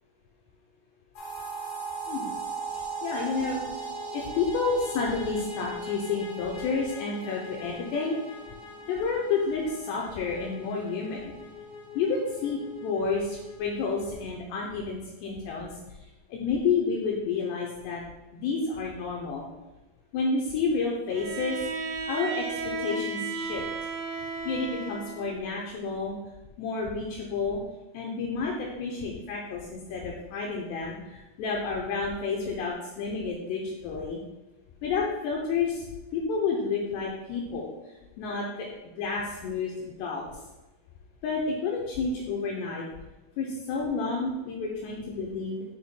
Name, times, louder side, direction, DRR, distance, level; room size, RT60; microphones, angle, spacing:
sound 1, 1.2-14.2, right 1 dB, 65° left, 3.4 m, -39 dB
voice 1, 3.0-3.6 4.1-8.2 8.9-11.4 12.0-18.0 18.3-19.5 20.1-23.6 24.4-26.2 26.6-27.6 27.9-34.2 34.8-35.9 36.1-38.7 39.0-40.3 41.2-42.8 43.4-45.6, left 4 dB, 80° left, -2 dB, 2.6 m, -30 dB
Bowed string instrument, 21.1-25.4, right 4 dB, 80° right, 2.1 m, -34 dB
8.6 x 6.5 x 2.2 m, 1.1 s
omnidirectional pair, 5.3 m